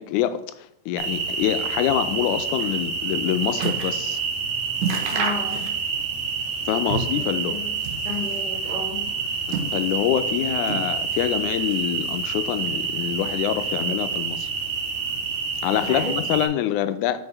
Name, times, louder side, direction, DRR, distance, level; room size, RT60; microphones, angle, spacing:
voice 1, 0.0-4.2 6.7-7.6 9.5-14.5 15.6-17.2, left 11 dB, 85° left, 2.0 m, -25 dB
sound 1, 1.0-16.5, right 5 dB, 60° right, 2.3 m, -28 dB
sound 2, 2.9-4.0 4.4-4.5 4.8-6.1 6.3-7.3 7.7-8.5 9.1-10.2 10.6-11.3 11.6-12.4 13.1-13.2, right 5 dB, 85° right, 2.4 m, -31 dB
voice 2, 5.1-5.8 7.5-7.7 8.0-9.1 15.7-16.2, left 3 dB, 50° left, 0.5 m, -32 dB
5.4 x 5.3 x 4.6 m
omnidirectional pair, 3.4 m